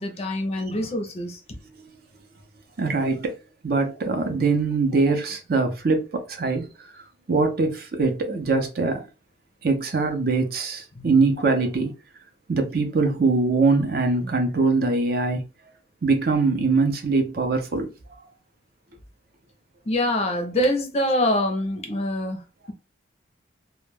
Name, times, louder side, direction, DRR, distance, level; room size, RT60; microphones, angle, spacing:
voice 1, 0.0-1.4 10.9-11.1 19.9-22.7, left 1 dB, 30° left, 0.5 m, -25 dB
voice 2, 2.8-3.4 3.6-6.7 7.3-9.0 9.6-11.9 12.5-15.4 16.0-17.9, right 3 dB, 50° right, 0.5 m, -22 dB
2.1 x 2.1 x 3.1 m
head